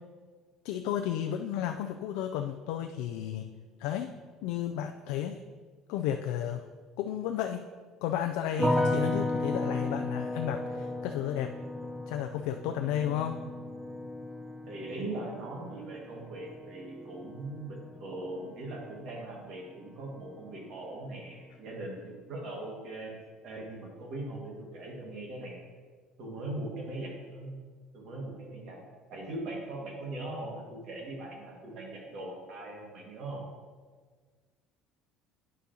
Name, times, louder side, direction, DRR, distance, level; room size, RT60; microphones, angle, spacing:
voice 1, 0.6-3.5 3.8-4.1 4.4-5.4 5.9-6.6 7.0-7.7 8.0-11.5 12.1-13.4, left 10 dB, 85° left, 6 dB, 0.3 m, -33 dB
sound 1, 8.6-19.7 19.9-20.7, left 1 dB, 15° right, 0.7 m, -35 dB
voice 2, 14.7-23.1 23.4-25.6 26.2-27.6 27.9-28.8 29.1-33.4, right 2 dB, 60° right, -1 dB, 1.8 m, -40 dB
9.5 x 6.0 x 2.9 m, 1.5 s
cardioid pair, 125°, 0 cm